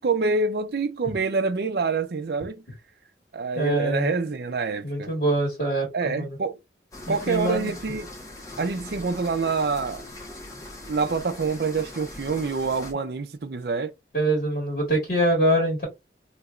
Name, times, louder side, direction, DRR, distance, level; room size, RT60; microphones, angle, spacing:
voice 1, 0.0-2.6 3.3-5.1 5.9-6.6 7.1-8.1 8.6-10.0 10.9-13.9, right 4 dB, 60° right, 0.5 m, -26 dB
voice 2, 3.5-4.1 4.8-6.4 7.1-7.7 14.1-15.9, right 1 dB, 50° left, 1.6 m, -24 dB
sound 1, 6.9-12.9, left 2 dB, 20° left, 1.1 m, -41 dB
3.3 x 2.9 x 2.4 m
head